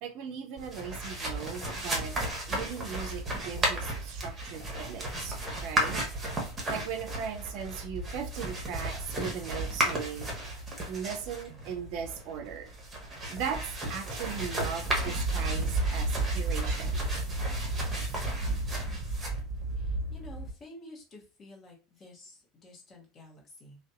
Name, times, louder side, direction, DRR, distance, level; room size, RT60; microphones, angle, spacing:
voice 1, 0.0-2.1 2.5-6.0 6.7-10.3 10.9-12.7 13.3-13.6 13.9-17.1, right 7 dB, 60° right, 0.4 m, -38 dB
sound 1, 0.6-20.5, right 1 dB, 20° right, 1.0 m, -33 dB
voice 2, 19.8-23.8, left 1 dB, 35° left, 1.0 m, -51 dB
2.6 x 2.2 x 2.2 m
hypercardioid pair, 75°, 0 cm